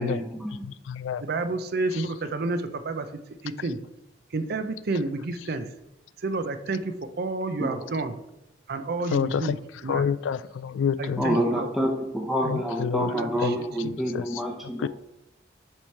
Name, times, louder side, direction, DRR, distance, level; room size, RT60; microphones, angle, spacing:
voice 1, 0.0-0.7 7.6-7.9 11.2-14.9, equal, ahead, 0 dB, 0.7 m, -28 dB
voice 2, 0.6-1.2 1.9-2.1 9.1-9.6 9.9-11.3 12.5-13.1 13.4-13.5 14.1-14.2 14.8-14.9, left 7 dB, 70° left, 17 dB, 0.3 m, -28 dB
voice 3, 1.2-3.1 3.4-3.8 4.3-5.7 6.2-8.1 8.7-9.6 9.8-10.1 11.0-11.7 13.1-13.5, right 3 dB, 55° right, 10 dB, 0.5 m, -30 dB
7.4 x 3.2 x 5.6 m, 0.89 s
head